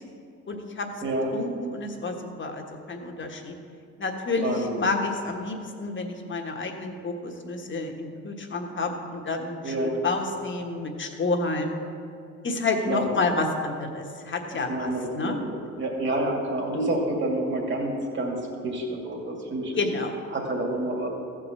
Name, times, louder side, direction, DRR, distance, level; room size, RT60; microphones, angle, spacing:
voice 1, 0.5-0.9 1.3-3.6 4.0-11.8 12.4-15.4 19.8-20.2, left 3 dB, 40° left, 3 dB, 1.5 m, -29 dB
voice 2, 4.4-4.8 9.6-10.0 12.9-13.1 14.5-18.4 18.6-19.8 20.3-21.1, right 1 dB, 40° right, 0 dB, 2.5 m, -28 dB
14.5 x 5.0 x 7.6 m, 2.6 s
cardioid pair, 90°, 30 cm